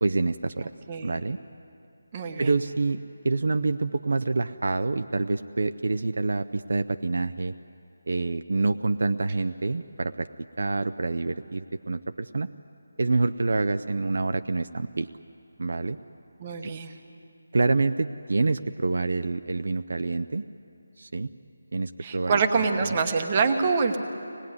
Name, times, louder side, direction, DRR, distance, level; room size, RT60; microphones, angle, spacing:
voice 1, 0.0-0.7 1.0-1.4 2.4-7.5 8.1-10.3 10.6-12.5 13.0-15.1 15.6-16.0 16.6-16.7 17.5-20.5 21.0-21.3 21.7-22.7 22.9-23.0, right 3 dB, 55° right, 9 dB, 0.6 m, -27 dB
voice 2, 0.9-1.2 2.1-2.5 16.4-16.9 22.0-24.0, right 5 dB, 20° right, 6 dB, 1.1 m, -25 dB
25.0 x 19.0 x 9.6 m, 2.6 s
figure-of-eight pair, 180°, 0 cm